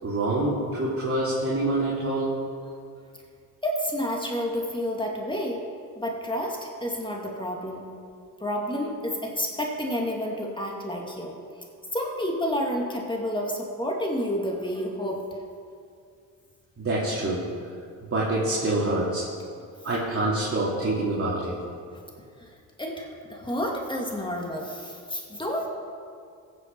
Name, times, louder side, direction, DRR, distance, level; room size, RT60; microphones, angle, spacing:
voice 1, 0.0-2.4 16.8-17.5 18.1-19.2 19.8-21.6, right 2 dB, 35° right, -6 dB, 2.7 m, -26 dB
voice 2, 3.6-5.6 6.0-7.8 8.4-11.3 11.9-15.2 22.4-22.5 22.8-25.7, equal, 10° left, 0 dB, 2.4 m, -30 dB
15.5 x 7.2 x 4.7 m, 2.3 s
supercardioid pair, 60°, 39 cm